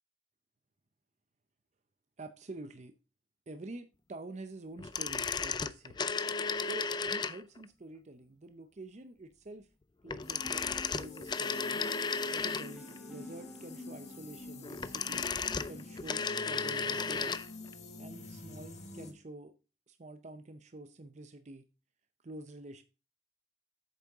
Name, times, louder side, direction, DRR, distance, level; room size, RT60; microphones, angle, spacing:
voice 1, 2.2-3.0 3.5-6.0 6.6-9.7 10.0-11.9 12.3-15.3 15.6-17.5 18.0-19.5 19.9-21.7 22.2-22.8, right 2 dB, 40° right, 0.6 m, -47 dB
sound 1, 4.8-7.6 10.1-13.0 14.6-17.5 17.7-17.8, left 5 dB, 25° left, 0.4 m, -34 dB
sound 2, 10.2-19.1, left 2 dB, 40° left, 1.7 m, -47 dB
sound 3, 10.4-15.1, left 1 dB, 5° right, 0.7 m, -51 dB
8.3 x 6.8 x 3.6 m
head